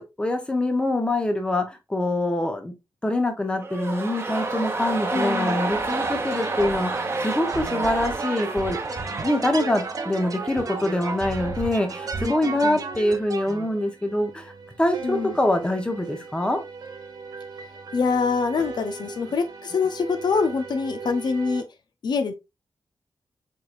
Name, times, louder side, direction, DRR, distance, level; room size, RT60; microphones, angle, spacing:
voice 1, 0.0-2.7 3.0-8.8 9.2-14.5 14.8-16.6, left 1 dB, 15° left, 0.9 m, -25 dB
sound 1, 3.6-11.7 11.9-12.0, right 3 dB, 35° right, 1.1 m, -30 dB
sound 2, 4.3-21.6, right 4 dB, 65° right, 1.1 m, -41 dB
voice 2, 5.1-5.6 12.2-12.3 12.6-12.8 15.0-15.3 17.9-21.6 22.0-22.3, left 5 dB, 70° left, 0.6 m, -25 dB
sound 3, 5.5-13.7, right 4 dB, 50° right, 0.6 m, -34 dB
4.6 x 3.9 x 2.5 m
wide cardioid pair, 135°, 8 cm